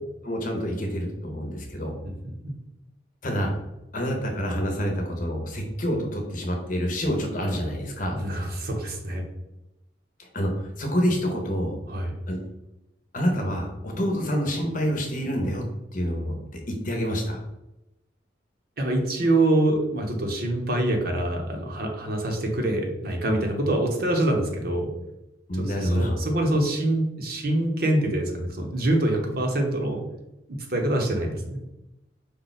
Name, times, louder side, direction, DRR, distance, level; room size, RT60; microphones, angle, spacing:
voice 1, 0.2-2.0 3.2-3.6 3.9-8.2 10.2-11.7 12.3-12.4 13.1-15.6 15.9-17.4 25.5-26.2, equal, 45° left, 2 dB, 0.8 m, -27 dB
voice 2, 8.1-9.2 11.9-12.1 18.8-24.9 25.5-30.0 30.5-31.6, right 1 dB, 55° right, 2 dB, 0.8 m, -25 dB
5.1 x 2.3 x 4.0 m, 0.93 s
head